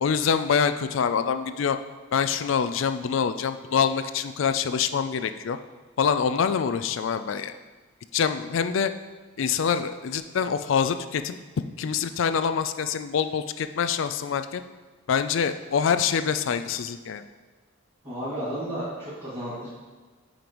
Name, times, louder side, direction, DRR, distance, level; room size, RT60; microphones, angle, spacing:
voice 1, 0.0-1.8 2.1-5.6 6.0-7.5 8.1-8.9 9.4-11.4 11.8-14.6 15.1-17.2, left 6 dB, 65° left, 10 dB, 0.4 m, -25 dB
voice 2, 18.0-19.7, right 1 dB, 30° right, -13 dB, 2.2 m, -32 dB
9.1 x 5.1 x 3.0 m, 1.4 s
head